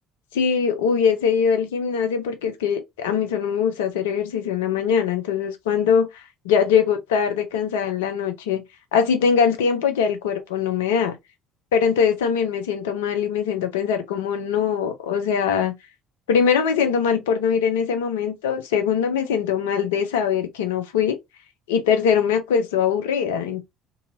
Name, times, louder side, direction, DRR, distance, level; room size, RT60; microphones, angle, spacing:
voice 1, 0.3-6.1 6.4-8.6 8.9-11.2 11.7-15.7 16.3-21.2 21.7-23.6, left 7 dB, 75° left, 0.6 m, -22 dB
2.7 x 2.6 x 2.7 m
hypercardioid pair, 60°, 0 cm